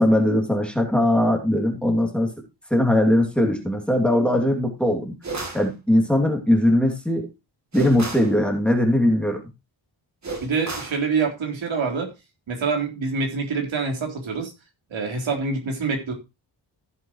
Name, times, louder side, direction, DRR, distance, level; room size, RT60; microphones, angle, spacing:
voice 1, 0.0-2.3 2.7-5.1 5.5-7.3 7.7-9.4, left 1 dB, ahead, 2 dB, 2.6 m, -20 dB
sound 1, 5.2-5.7 7.7-8.3 10.2-11.0, right 3 dB, 35° right, 2.6 m, -32 dB
voice 2, 10.4-12.1 12.5-14.5 14.9-16.1, right 4 dB, 80° right, 2 dB, 3.8 m, -26 dB
15.0 x 7.7 x 3.1 m, 0.26 s
wide cardioid pair, 165°, 46 cm